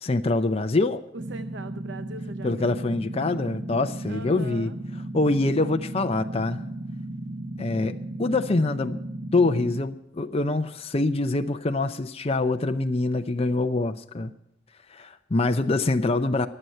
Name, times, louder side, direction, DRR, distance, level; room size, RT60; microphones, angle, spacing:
voice 1, 0.0-1.0 2.4-4.7 5.1-6.6 7.6-7.9 8.2-9.0 9.3-14.3 14.9-16.5, left 2 dB, 30° left, 7 dB, 0.6 m, -25 dB
voice 2, 1.1-2.8 4.1-4.8, right 3 dB, 65° right, 10 dB, 0.7 m, -40 dB
sound 1, 1.2-9.8, right 1 dB, 25° right, 1.1 m, -35 dB
23.5 x 7.9 x 5.5 m, 0.79 s
head